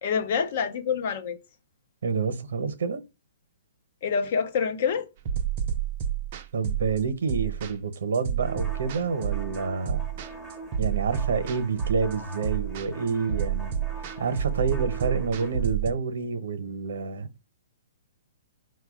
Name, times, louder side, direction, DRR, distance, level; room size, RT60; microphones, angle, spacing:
voice 1, 0.0-1.4 4.0-5.1, left 6 dB, 45° left, 0.6 m, -26 dB
voice 2, 2.0-3.0 6.5-10.1 10.8-13.7 14.2-17.3, right 5 dB, 75° right, 0.9 m, -28 dB
sound 1, 5.2-15.9, right 9 dB, 35° right, 0.5 m, -30 dB
sound 2, 8.4-15.6, right 2 dB, ahead, 0.8 m, -43 dB
4.6 x 2.3 x 4.7 m
hypercardioid pair, 165°, 0 cm